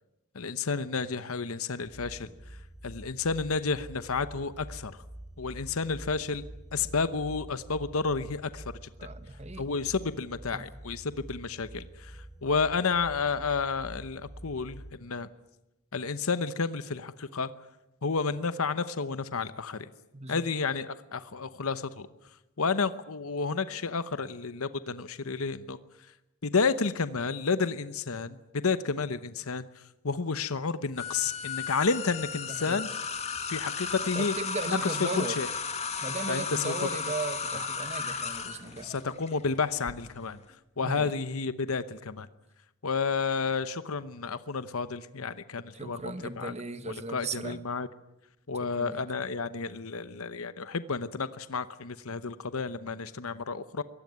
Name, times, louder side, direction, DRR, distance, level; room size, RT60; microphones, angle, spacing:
voice 1, 0.3-2.3 2.8-5.0 5.4-6.4 6.7-8.6 9.6-15.3 15.9-17.5 18.0-19.9 20.3-22.1 22.6-25.8 26.4-29.7 30.0-32.9 33.5-34.3 34.8-35.5 36.3-36.7 38.8-40.4 40.8-42.3 42.8-46.5 46.9-47.9 48.5-53.8, left 4 dB, 75° left, 13 dB, 0.9 m, -31 dB
sound 1, 1.8-14.9, right 1 dB, ahead, 2.4 m, -47 dB
voice 2, 9.0-9.6 10.5-10.6 20.1-20.4 32.5-32.8 34.1-35.4 36.0-38.9 40.8-41.1 45.7-47.6 48.6-49.0, right 3 dB, 30° right, 11 dB, 1.4 m, -37 dB
sound 2, 31.0-39.9, left 5 dB, 30° left, 2.1 m, -35 dB
23.0 x 18.5 x 9.5 m, 0.95 s
head